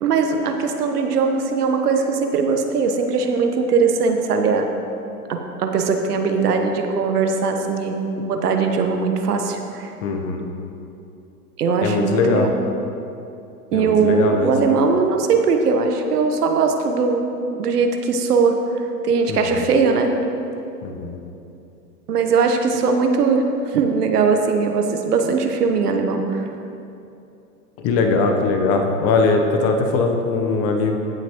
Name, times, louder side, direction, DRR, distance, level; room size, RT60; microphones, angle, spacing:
voice 1, 0.0-4.7 5.3-9.9 11.6-12.5 13.7-17.2 17.6-18.6 19.0-20.1 22.1-26.5, right 5 dB, 80° right, 5 dB, 1.2 m, -20 dB
voice 2, 10.0-10.5 11.8-12.5 13.7-14.5 19.3-19.6 20.8-21.2 27.8-30.9, left 3 dB, 30° left, 4 dB, 0.9 m, -20 dB
16.0 x 6.0 x 3.0 m, 2.7 s
hypercardioid pair, 120°, 46 cm